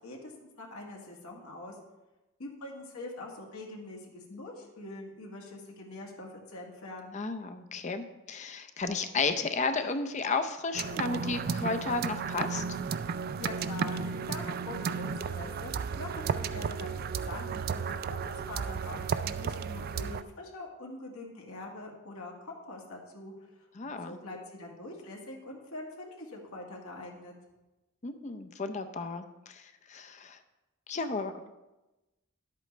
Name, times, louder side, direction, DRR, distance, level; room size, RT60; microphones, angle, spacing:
voice 1, 0.0-1.8 2.4-7.2 13.4-15.7 16.0-23.3 23.6-27.3, left 2 dB, 85° left, -1 dB, 1.8 m, -44 dB
voice 2, 7.1-12.8 23.8-24.2 28.0-30.4 30.9-31.3, left 4 dB, 35° left, 8 dB, 0.5 m, -33 dB
sound 1, 10.7-20.2, right 6 dB, 45° right, 0.3 m, -34 dB
11.0 x 8.3 x 3.2 m, 1.0 s
head